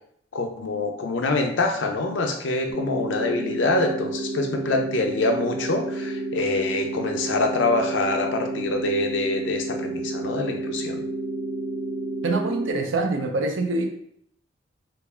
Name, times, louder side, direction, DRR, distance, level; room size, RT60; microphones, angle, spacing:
voice 1, 0.3-11.0, left 2 dB, 75° left, 4 dB, 0.6 m, -25 dB
sound 1, 2.7-12.7, right 2 dB, 40° right, 1.0 m, -30 dB
voice 2, 12.2-13.8, right 2 dB, 85° right, 4 dB, 0.6 m, -25 dB
3.3 x 2.4 x 3.4 m, 0.69 s
head